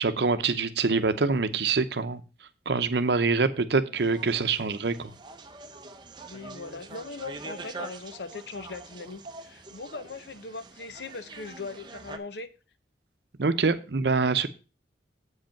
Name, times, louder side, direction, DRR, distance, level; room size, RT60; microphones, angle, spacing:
voice 1, 0.0-2.2 2.7-5.1 13.4-14.5, right 4 dB, 70° right, 11 dB, 0.7 m, -25 dB
sound 1, 3.9-12.2, right 3 dB, 25° right, 0.6 m, -45 dB
voice 2, 6.2-12.5, left 3 dB, 70° left, 12 dB, 0.7 m, -40 dB
8.0 x 5.3 x 5.8 m, 0.32 s
head